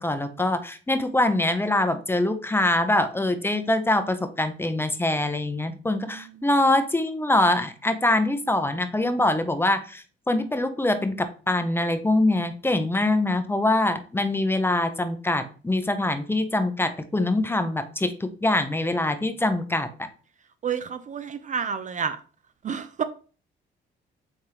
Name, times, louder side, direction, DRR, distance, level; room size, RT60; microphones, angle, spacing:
voice 1, 0.0-20.1, left 2 dB, 10° left, 0.6 m, -24 dB
voice 2, 6.1-6.4 20.6-22.2 22.6-23.0, right 7 dB, 40° right, 0.4 m, -30 dB
4.9 x 3.5 x 2.9 m
cardioid pair, 90°, 20 cm